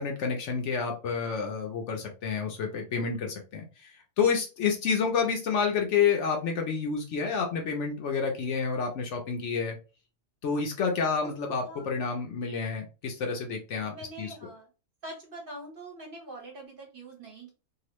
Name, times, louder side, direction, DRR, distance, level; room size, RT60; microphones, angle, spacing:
voice 1, 0.0-9.7 10.4-14.3, left 6 dB, 65° left, 2 dB, 0.9 m, -29 dB
voice 2, 11.6-12.0 13.9-14.7 15.0-17.5, right 1 dB, 45° right, 0 dB, 1.0 m, -44 dB
2.9 x 2.3 x 3.0 m, 0.32 s
omnidirectional pair, 1.4 m